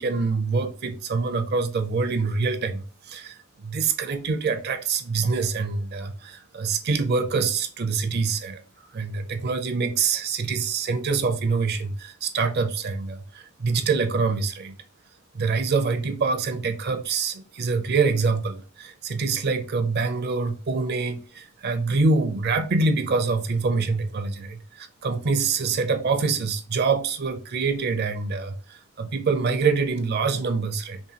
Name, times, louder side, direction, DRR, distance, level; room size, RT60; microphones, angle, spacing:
voice 1, 0.0-8.6 8.9-14.7 15.3-31.0, right 4 dB, 45° right, 0.5 m, -25 dB
5.5 x 2.3 x 2.8 m
head